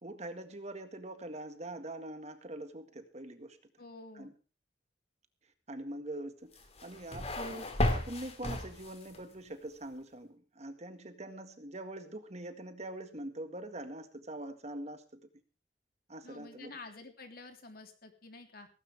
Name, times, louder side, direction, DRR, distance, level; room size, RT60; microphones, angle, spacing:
voice 1, 0.0-3.6 4.1-4.3 5.7-15.2 16.1-16.8, right 1 dB, 40° right, 8 dB, 1.8 m, -43 dB
voice 2, 3.8-4.3 16.2-18.7, left 3 dB, 55° left, 5 dB, 3.3 m, -49 dB
sound 1, 6.5-9.2, left 1 dB, 35° left, 2.5 m, -34 dB
17.5 x 16.0 x 3.5 m, 0.33 s
head